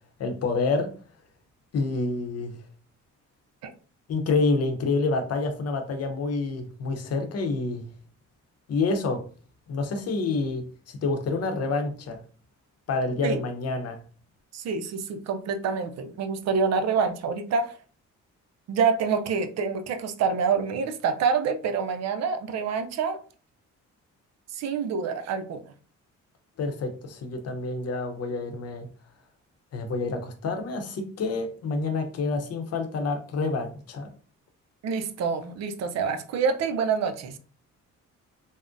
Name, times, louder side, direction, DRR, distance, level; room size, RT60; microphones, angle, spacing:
voice 1, 0.2-0.9 1.7-2.5 4.1-7.8 8.7-9.2 9.7-12.2 12.9-14.0 26.6-28.9 29.7-34.1, left 3 dB, 55° left, 6 dB, 0.7 m, -28 dB
voice 2, 14.5-17.7 18.7-23.2 24.6-25.6 34.8-37.4, right 5 dB, 60° right, 8 dB, 0.5 m, -27 dB
3.5 x 2.1 x 2.5 m, 0.40 s
cardioid pair, 90°, 30 cm